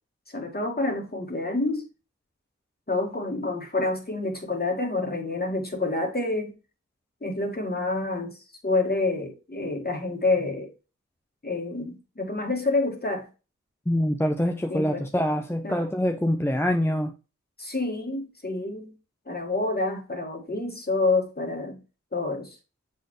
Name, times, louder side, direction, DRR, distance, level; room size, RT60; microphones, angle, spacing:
voice 1, 0.3-1.9 2.9-6.5 7.2-8.4 8.6-10.7 11.4-13.3 14.7-15.1 15.6-15.8 17.6-18.9 19.3-21.8 22.1-22.6, left 2 dB, 30° left, 2.0 m, -28 dB
voice 2, 13.9-17.1, equal, 10° left, 0.7 m, -25 dB
7.2 x 4.3 x 3.1 m
cardioid pair, 55°, 30 cm